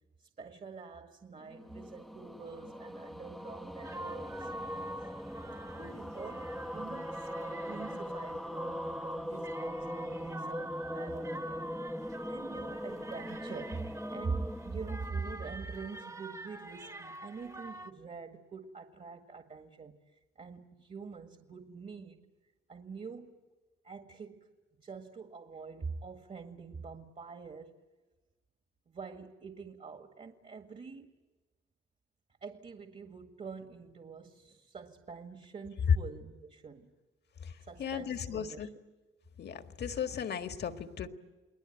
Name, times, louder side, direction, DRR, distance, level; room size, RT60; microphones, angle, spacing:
voice 1, 0.2-4.5 5.6-11.7 12.3-22.3 22.7-23.4 23.8-24.5 24.8-27.7 28.9-31.1 32.4-36.9 37.7-38.7, right 4 dB, 35° right, 1.9 m, -45 dB
sound 1, 1.4-15.9, equal, ahead, 0.9 m, -41 dB
sound 2, 3.8-17.9, right 1 dB, 15° right, 1.4 m, -46 dB
voice 2, 37.8-38.7 39.4-41.1, left 8 dB, 55° left, 1.8 m, -37 dB
29.5 x 20.5 x 9.1 m
cardioid pair, 90°, 20 cm